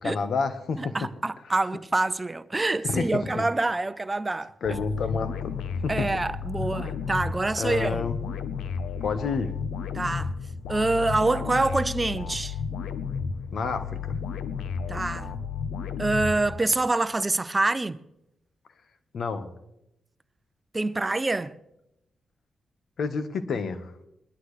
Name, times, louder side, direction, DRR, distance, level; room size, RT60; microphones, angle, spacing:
voice 1, 0.0-1.0 2.8-3.5 4.6-5.5 5.8-6.1 7.6-8.2 9.0-9.5 13.5-14.2 19.1-19.5 23.0-23.9, left 4 dB, 70° left, 1.3 m, -29 dB
voice 2, 0.8-4.5 5.9-8.1 9.9-10.3 10.7-12.6 14.9-15.3 16.0-18.0 20.7-21.5, right 2 dB, 25° right, 0.7 m, -26 dB
sound 1, 4.6-16.9, left 6 dB, 85° left, 0.9 m, -33 dB
21.5 x 11.5 x 3.3 m
cardioid pair, 60°, 0 cm